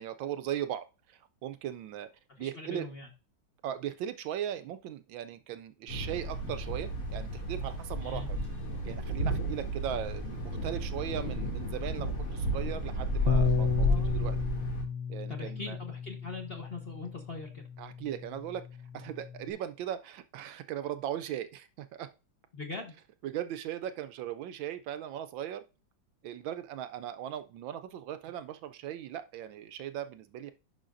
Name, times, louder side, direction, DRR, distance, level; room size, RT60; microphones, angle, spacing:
voice 1, 0.0-2.1 2.4-2.9 3.6-8.4 8.8-14.4 15.1-15.8 17.8-18.6 18.9-22.1 23.2-25.6 26.2-30.5, right 10 dB, 75° right, 11 dB, 1.2 m, -38 dB
voice 2, 2.3-3.1 8.0-8.3 13.8-14.2 15.3-17.6 22.5-22.9, left 3 dB, 35° left, 2 dB, 1.1 m, -41 dB
Thunder, 5.9-14.8, right 1 dB, 90° left, 3.3 m, -32 dB
Bass guitar, 13.3-19.5, left 7 dB, 70° left, 1.5 m, -34 dB
10.5 x 5.7 x 2.5 m, 0.31 s
omnidirectional pair, 2.3 m